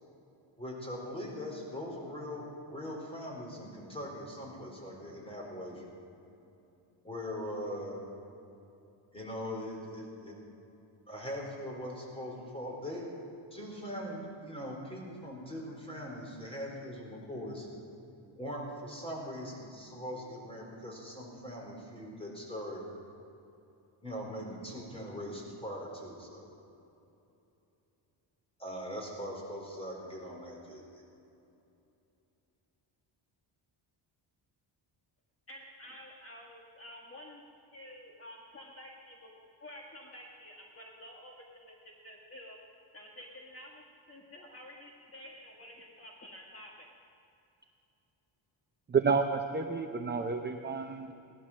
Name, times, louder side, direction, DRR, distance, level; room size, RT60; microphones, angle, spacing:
voice 1, 0.6-5.8 7.0-8.0 9.1-10.4 11.1-13.0 13.5-17.7 18.4-22.8 24.0-26.4 28.6-31.0, equal, 10° left, -2 dB, 4.3 m, -41 dB
voice 2, 35.5-37.4 37.7-39.3 39.6-42.6 42.9-46.9, left 1 dB, 30° left, -1 dB, 1.7 m, -50 dB
voice 3, 48.9-51.1, right 5 dB, 20° right, 5 dB, 0.6 m, -30 dB
18.0 x 12.0 x 6.3 m, 2.8 s
cardioid pair, 140°, 48 cm